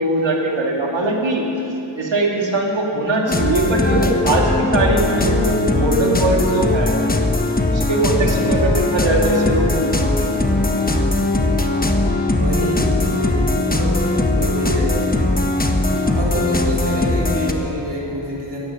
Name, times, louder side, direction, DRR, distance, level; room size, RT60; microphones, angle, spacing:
voice 1, 0.0-1.4 2.0-6.9 7.7-10.3, right 2 dB, 85° right, -1 dB, 2.4 m, -20 dB
sound 1, 3.3-17.5, left 2 dB, 20° left, 1.1 m, -19 dB
voice 2, 8.2-8.5 12.3-14.0 14.3-14.9 16.0-18.6, equal, 65° right, -5 dB, 3.9 m, -26 dB
16.0 x 14.0 x 5.9 m, 2.9 s
wide cardioid pair, 100°, 44 cm